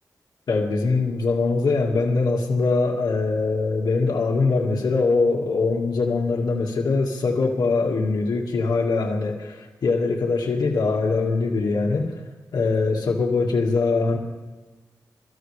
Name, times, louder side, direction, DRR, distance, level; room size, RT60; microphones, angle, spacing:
voice 1, 0.5-12.1 12.5-14.2, left 3 dB, 80° left, -1 dB, 1.8 m, -22 dB
22.5 x 13.5 x 3.3 m, 1.2 s
wide cardioid pair, 85°, 7 cm